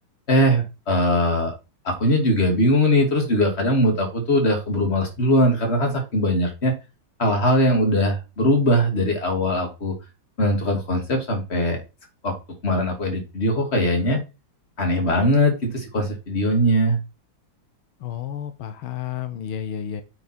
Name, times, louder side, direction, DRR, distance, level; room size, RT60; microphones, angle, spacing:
voice 1, 0.3-1.5 1.8-6.7 7.2-10.0 10.4-11.8 12.2-12.3 12.6-14.2 14.8-17.0, equal, 30° left, 2.4 m, -20 dB
voice 2, 18.0-20.0, left 9 dB, 90° left, 1.7 m, -31 dB
8.7 x 4.9 x 4.4 m
omnidirectional pair, 2.2 m